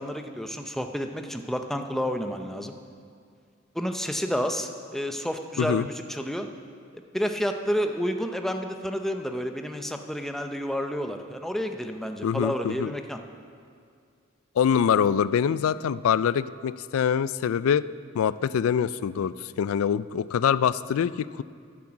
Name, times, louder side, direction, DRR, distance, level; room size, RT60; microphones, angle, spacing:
voice 1, 0.0-2.7 3.7-6.5 7.1-13.2, equal, ahead, 5 dB, 0.6 m, -30 dB
voice 2, 5.6-5.9 12.2-12.9 14.6-17.8 18.1-21.4, left 8 dB, 70° left, 17 dB, 0.3 m, -24 dB
10.5 x 8.6 x 7.3 m, 2.3 s
head